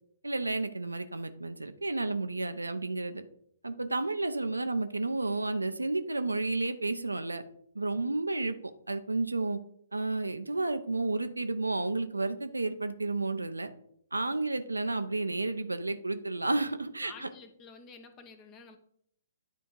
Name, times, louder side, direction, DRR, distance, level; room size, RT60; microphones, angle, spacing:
voice 1, 0.2-3.2 3.6-7.4 7.7-8.6 8.9-9.6 9.9-13.7 14.1-17.3, right 2 dB, 85° right, 9 dB, 0.7 m, -31 dB
voice 2, 17.0-18.8, left 5 dB, 25° left, 7 dB, 1.1 m, -50 dB
9.5 x 3.6 x 4.7 m, 0.67 s
figure-of-eight pair, 125°, 0 cm